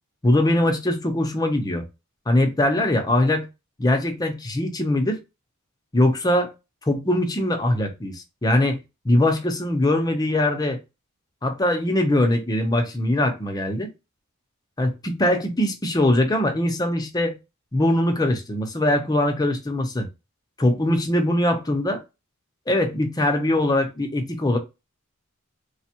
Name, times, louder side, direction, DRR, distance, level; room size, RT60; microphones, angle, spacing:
voice 1, 0.2-1.8 2.3-3.5 3.8-5.2 5.9-6.5 6.9-8.8 9.0-10.8 11.4-13.9 14.8-17.4 17.7-20.1 20.6-22.0 22.7-24.6, left 1 dB, 20° left, 0.6 m, -22 dB
3.4 x 2.2 x 2.8 m
head